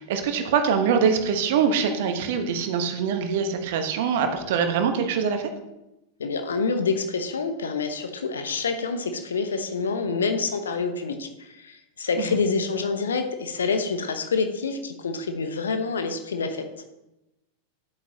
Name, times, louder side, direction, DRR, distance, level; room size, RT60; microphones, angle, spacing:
voice 1, 0.0-5.5 12.2-12.4, right 6 dB, 50° right, 7 dB, 1.1 m, -24 dB
voice 2, 6.2-16.6, left 4 dB, 70° left, 8 dB, 0.9 m, -27 dB
9.9 x 8.4 x 2.9 m, 0.91 s
figure-of-eight pair, 90°, 0 cm